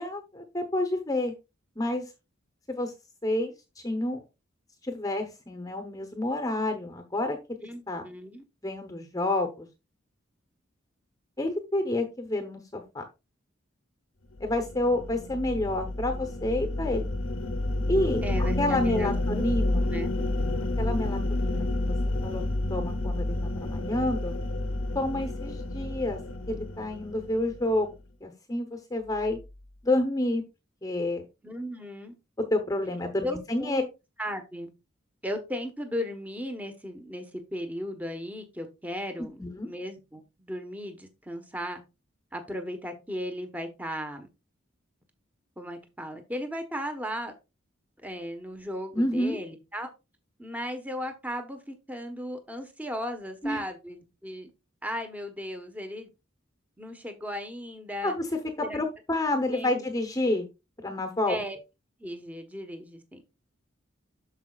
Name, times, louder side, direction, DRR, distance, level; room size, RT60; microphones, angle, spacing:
voice 1, 0.0-1.3 1.8-2.1 2.7-2.9 3.2-4.2 4.8-7.4 7.9-8.0 8.6-9.7 11.4-13.0 14.4-17.1 17.9-18.2 18.6-19.8 20.8-22.0 22.2-22.4 22.7-24.4 24.9-26.2 26.5-27.9 28.2-29.4 29.8-30.4 30.8-31.2 32.5-33.8 39.4-39.7 48.9-49.4 53.4-53.6 58.0-58.3 58.6-60.5 60.8-61.4, left 1 dB, 20° left, 6 dB, 0.9 m, -29 dB
voice 2, 7.6-8.4 18.2-19.4 19.8-20.1 31.4-32.1 33.2-33.8 34.2-34.7 35.2-41.8 42.3-44.3 45.6-47.3 48.0-49.9 50.4-54.5 54.8-56.1 56.8-58.1 58.6-58.8 59.5-59.8 61.3-61.6 62.0-63.2, equal, 10° right, 6 dB, 1.1 m, -36 dB
sound 1, 14.4-27.9, left 1 dB, 80° left, 0.8 m, -30 dB
12.5 x 4.9 x 2.4 m, 0.26 s
head